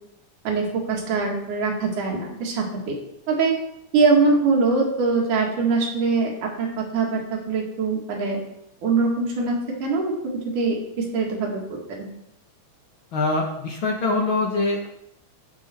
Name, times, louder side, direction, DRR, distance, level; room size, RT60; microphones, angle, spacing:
voice 1, 0.5-2.9 3.3-3.5 3.9-8.4 8.8-10.1 10.6-12.1, right 4 dB, 85° right, -1 dB, 3.5 m, -23 dB
voice 2, 13.1-14.9, left 3 dB, 50° left, -1 dB, 1.8 m, -23 dB
14.0 x 5.8 x 4.4 m, 0.80 s
omnidirectional pair, 3.5 m